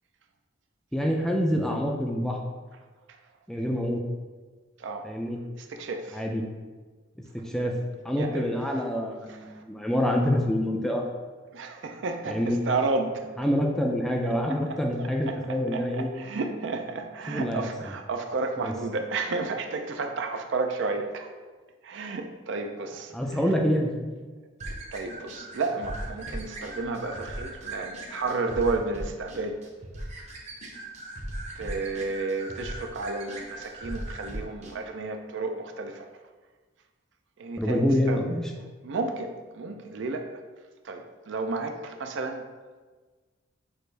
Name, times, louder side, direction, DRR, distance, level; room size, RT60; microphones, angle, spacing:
voice 1, 0.9-2.4 3.5-4.0 5.0-5.4 6.1-6.4 7.3-7.7 8.0-11.1 12.3-12.6 13.4-16.1 17.3-17.7 18.6-18.7 23.1-24.1 37.6-38.4, equal, ahead, 0 dB, 0.3 m, -26 dB
voice 2, 5.6-6.2 8.2-8.5 9.3-9.6 11.5-13.3 14.5-21.3 21.8-23.4 24.6-29.6 31.6-36.1 37.4-38.2 38.8-40.4 40.8-42.5, right 3 dB, 65° right, 5 dB, 0.4 m, -32 dB
sound 1, 24.6-34.7, right 1 dB, 35° right, 0.7 m, -38 dB
6.3 x 2.5 x 3.2 m, 1.4 s
head